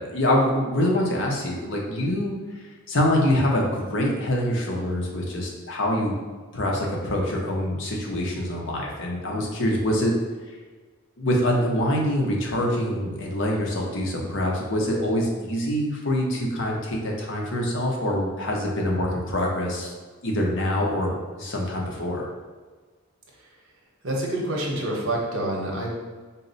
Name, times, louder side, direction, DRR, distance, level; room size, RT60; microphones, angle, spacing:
voice 1, 0.0-6.2 6.5-10.1 11.2-19.9 20.2-22.3, left 1 dB, 55° left, -1 dB, 0.7 m, -25 dB
voice 2, 24.0-25.9, right 1 dB, 65° right, -1 dB, 0.8 m, -27 dB
4.0 x 2.0 x 3.9 m, 1.4 s
head